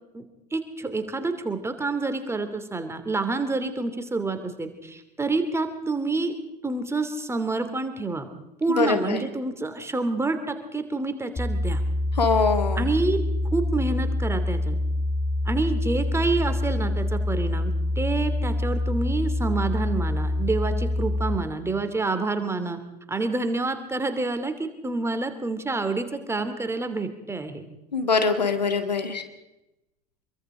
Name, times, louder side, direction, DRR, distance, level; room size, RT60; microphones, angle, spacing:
voice 1, 0.5-6.3 6.6-8.3 8.6-11.8 12.8-13.2 13.5-14.8 15.4-22.8 23.1-27.7, right 3 dB, 10° right, 8 dB, 2.8 m, -28 dB
voice 2, 8.8-9.2 12.2-12.8 27.9-29.2, left 4 dB, 80° left, 7 dB, 2.2 m, -23 dB
sound 1, 11.4-21.4, left 1 dB, 25° left, 2.9 m, -26 dB
26.0 x 23.0 x 5.0 m, 0.94 s
figure-of-eight pair, 70°, 21 cm